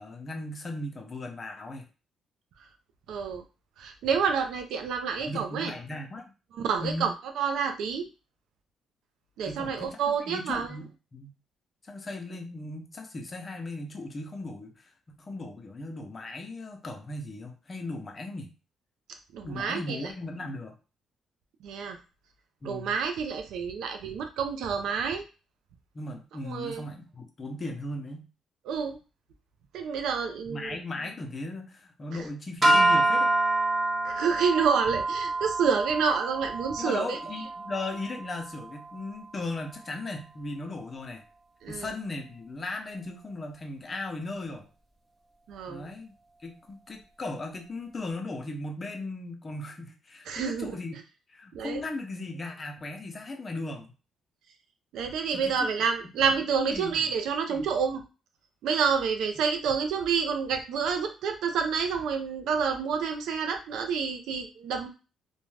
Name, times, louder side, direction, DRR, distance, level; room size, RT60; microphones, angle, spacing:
voice 1, 0.0-1.8 5.2-6.2 6.8-7.1 9.4-11.3 11.8-14.9 15.2-18.5 19.4-20.8 22.6-22.9 25.9-28.3 30.5-33.3 36.8-41.2 41.7-44.7 45.7-46.1 46.4-51.0 51.3-53.9 55.3-55.7 56.6-57.0 57.5-57.7, left 2 dB, 35° left, 4 dB, 0.7 m, -37 dB
voice 2, 3.1-3.4 3.8-5.7 6.5-8.1 9.4-10.7 19.3-20.1 21.6-22.0 22.6-25.2 26.4-26.8 28.7-29.0 29.7-30.8 34.0-37.2 41.6-41.9 45.5-45.9 50.3-50.7 51.5-51.8 54.9-58.0 58.6-64.9, right 6 dB, 80° right, 6 dB, 0.5 m, -28 dB
sound 1, 32.6-39.0, right 2 dB, 15° right, 0.7 m, -27 dB
2.5 x 2.2 x 3.2 m, 0.32 s
cardioid pair, 90°, 0 cm